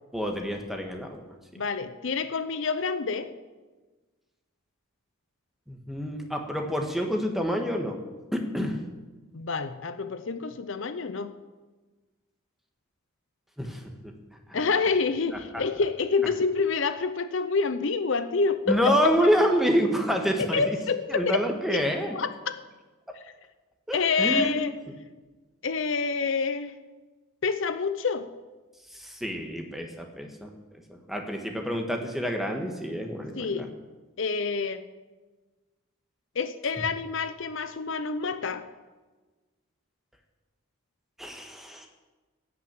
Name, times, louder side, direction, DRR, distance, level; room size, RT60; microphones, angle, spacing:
voice 1, 0.1-1.2 5.7-8.0 8.3-8.8 13.6-13.8 14.5-14.6 18.7-20.8 21.1-22.2 23.9-24.6 28.9-30.5 31.1-33.7 41.2-41.9, equal, ahead, 3 dB, 1.4 m, -27 dB
voice 2, 1.6-3.3 9.3-11.4 14.5-19.3 20.5-22.6 23.9-24.7 25.6-26.8 27.4-28.3 33.4-33.7 34.2-34.8 36.4-38.7, left 4 dB, 60° left, 11 dB, 0.6 m, -27 dB
16.5 x 6.0 x 8.9 m, 1.3 s
head